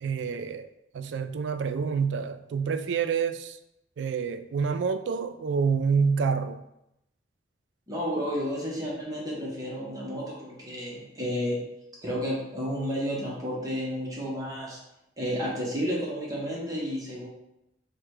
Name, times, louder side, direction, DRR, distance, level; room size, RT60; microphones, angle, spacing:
voice 1, 0.0-3.6 4.0-6.6, right 5 dB, 85° right, 11 dB, 0.3 m, -28 dB
voice 2, 7.9-11.6 12.0-14.8 15.2-17.3, equal, 20° right, -5 dB, 1.0 m, -31 dB
4.6 x 2.2 x 4.6 m, 0.85 s
head